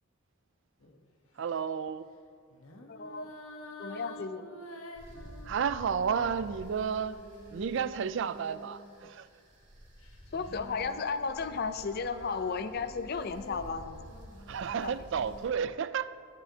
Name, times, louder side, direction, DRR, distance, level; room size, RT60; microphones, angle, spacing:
sound 1, 0.8-1.1 2.5-9.1 10.0-15.6, left 1 dB, 85° left, 1.1 m, -49 dB
voice 1, 1.4-2.1 5.4-7.2 7.5-9.3 14.5-16.1, right 7 dB, 60° right, 0.4 m, -32 dB
voice 2, 2.9-3.3 3.8-4.5 10.3-14.1 14.8-14.9, left 5 dB, 50° left, 0.4 m, -34 dB
sound 2, 4.9-15.5, equal, 40° right, 2.1 m, -51 dB
22.0 x 7.4 x 2.8 m
head